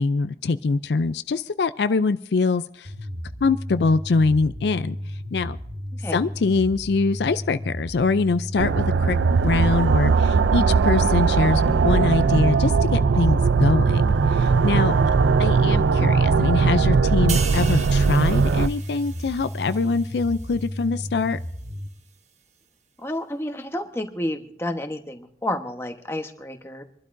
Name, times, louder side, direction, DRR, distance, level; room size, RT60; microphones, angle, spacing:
voice 1, 0.0-2.9 3.4-5.0 5.3-5.6 6.1-9.2 9.4-15.0 15.4-21.4, left 4 dB, 70° left, 12 dB, 0.4 m, -23 dB
sound 1, 2.8-21.9, equal, 60° right, 1.9 m, -34 dB
sound 2, 8.6-18.7, right 5 dB, 90° right, 0.4 m, -19 dB
sound 3, 17.3-20.8 21.2-21.4, right 6 dB, 40° right, 1.0 m, -37 dB
voice 2, 23.0-26.8, left 1 dB, 15° left, 4 dB, 1.1 m, -30 dB
26.5 x 12.0 x 2.6 m, 0.70 s
head